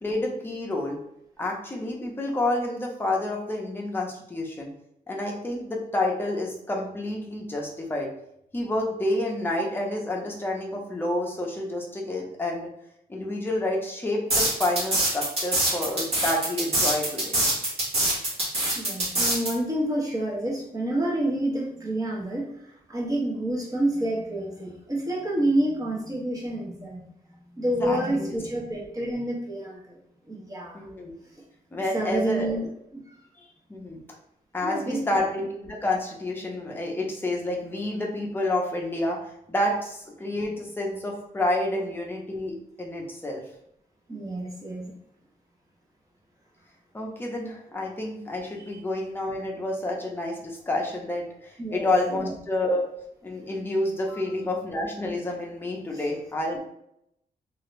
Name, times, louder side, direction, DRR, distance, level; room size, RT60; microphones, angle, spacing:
voice 1, 0.0-1.0 1.4-4.7 5.1-8.1 8.5-12.7 13.1-17.4 27.8-28.4 30.7-31.1 31.7-32.6 33.7-34.0 34.5-39.2 39.5-43.4 46.9-52.8 53.2-56.6, left 1 dB, 15° left, -1 dB, 0.7 m, -29 dB
sound 1, 14.3-19.5, right 1 dB, 45° right, 1.3 m, -24 dB
voice 2, 18.7-22.5 22.9-27.1 27.5-30.0 30.3-30.9 31.9-33.1 34.6-35.1 44.1-44.9 51.6-52.4 54.1-54.2 55.9-56.0, right 1 dB, 25° right, -3 dB, 0.9 m, -28 dB
2.8 x 2.5 x 3.1 m, 0.78 s
wide cardioid pair, 125°, 15 cm